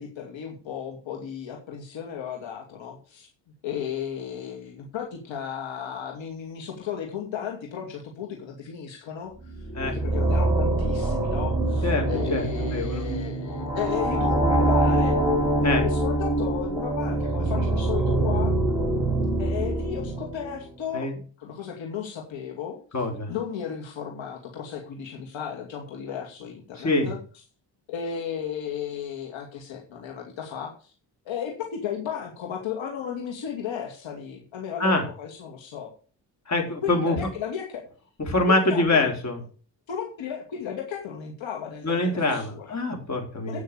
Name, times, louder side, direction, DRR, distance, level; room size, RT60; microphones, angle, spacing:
voice 1, 0.0-3.3 3.6-9.3 9.8-15.2 15.6-18.5 19.4-21.1 21.4-22.8 23.3-27.2 27.9-30.9 31.3-35.9 36.8-37.8 38.3-39.1 39.9-42.8 43.5-43.6, left 8 dB, 70° left, 1 dB, 2.4 m, -34 dB
sound 1, 9.4-20.7, right 2 dB, 5° right, 4.8 m, -24 dB
voice 2, 11.8-13.1 15.6-15.9 17.5-17.7 20.9-21.2 22.9-23.3 26.8-27.1 34.8-35.0 36.5-37.2 38.2-39.4 41.8-43.6, left 2 dB, 35° left, 3 dB, 4.1 m, -25 dB
8.8 x 6.4 x 6.9 m, 0.38 s
supercardioid pair, 50°, 47 cm